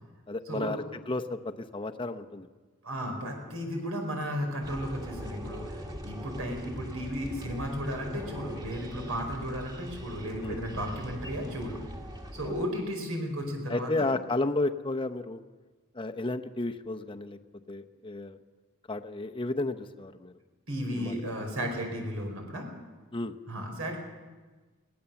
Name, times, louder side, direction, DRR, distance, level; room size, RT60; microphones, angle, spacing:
voice 1, 0.3-2.5 10.4-10.6 12.4-12.6 13.7-15.4 15.9-17.4 17.7-18.4 18.9-20.3 20.9-21.5 23.1-23.3, left 2 dB, 25° left, 7 dB, 0.8 m, -32 dB
voice 2, 2.8-11.8 12.3-13.9 20.7-22.7 23.5-24.0, equal, 75° right, 2 dB, 5.1 m, -34 dB
sound 1, 4.6-12.7, equal, 20° right, 1.7 m, -41 dB
21.5 x 17.5 x 7.1 m, 1.3 s
head